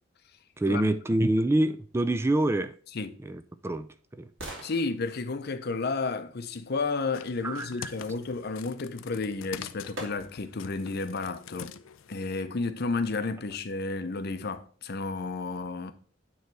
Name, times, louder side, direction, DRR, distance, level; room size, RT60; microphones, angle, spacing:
voice 1, 0.6-2.7 3.2-3.9 4.2-4.3 7.4-7.9, right 1 dB, 15° right, 0.3 m, -26 dB
sound 1, 2.9-7.0 9.1-9.2 10.0-10.6 11.1-11.2, right 1 dB, 75° right, 2.5 m, -46 dB
voice 2, 4.6-11.7 12.1-15.9, left 3 dB, 55° left, 0.7 m, -32 dB
sound 2, 7.1-12.3, left 8 dB, 90° left, 0.5 m, -45 dB
9.2 x 3.3 x 4.6 m
head